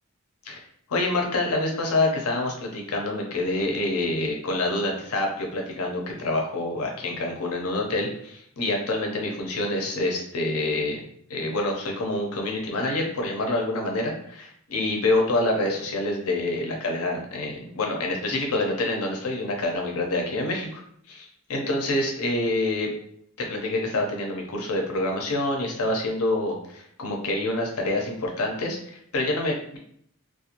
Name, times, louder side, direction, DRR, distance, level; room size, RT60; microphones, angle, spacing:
voice 1, 0.9-11.0 11.3-20.8 21.1-22.9 23.4-29.8, left 2 dB, 80° left, 1 dB, 0.6 m, -27 dB
2.5 x 2.2 x 2.8 m, 0.68 s
head